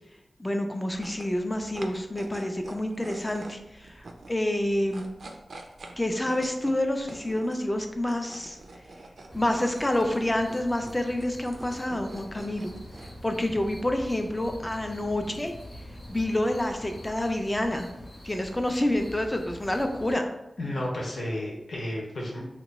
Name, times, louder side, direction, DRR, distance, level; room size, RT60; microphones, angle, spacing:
voice 1, 0.4-5.1 6.0-8.6 9.3-12.7 13.2-15.5 16.1-17.9 18.2-20.3, left 1 dB, 15° left, 5 dB, 0.4 m, -28 dB
sound 1, 0.9-16.2, right 2 dB, 70° right, 0.4 m, -47 dB
sound 2, 9.3-20.2, equal, 30° left, 0.8 m, -45 dB
voice 2, 20.6-22.5, left 1 dB, 65° left, -3 dB, 0.8 m, -32 dB
2.9 x 2.2 x 4.0 m, 0.87 s
wide cardioid pair, 115°, 0 cm